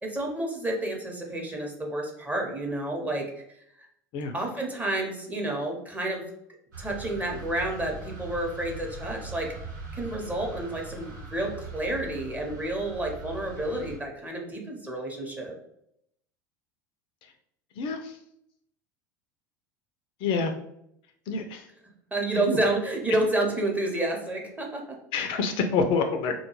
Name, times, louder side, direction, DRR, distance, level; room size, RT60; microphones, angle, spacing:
voice 1, 0.0-3.3 3.8-3.9 4.3-6.2 6.8-9.5 9.9-15.5 22.1-25.0, right 1 dB, 15° right, 0 dB, 0.7 m, -30 dB
sound 1, 6.7-14.0, right 2 dB, 85° right, 1.0 m, -41 dB
voice 2, 17.8-18.2 20.2-20.5 21.3-21.7 22.3-22.7 25.1-26.3, left 4 dB, 55° left, 6 dB, 0.4 m, -27 dB
2.2 x 2.2 x 2.9 m, 0.75 s
hypercardioid pair, 85°, 10 cm